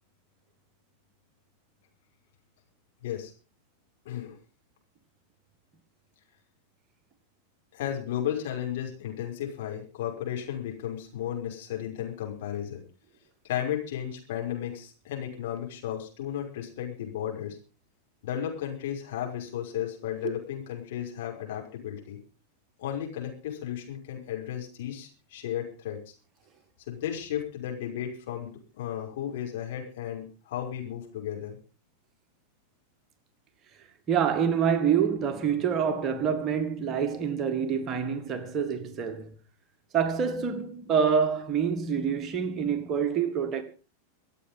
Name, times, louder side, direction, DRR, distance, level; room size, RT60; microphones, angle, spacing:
voice 1, 4.0-4.4 7.7-12.8 13.4-17.6 18.2-22.2 22.8-26.1 26.9-31.6, left 10 dB, 55° left, 5.8 m, -34 dB
voice 2, 34.1-39.3 39.9-43.6, right 7 dB, 30° right, 1.9 m, -26 dB
25.0 x 8.4 x 5.4 m
figure-of-eight pair, 90°, 0 cm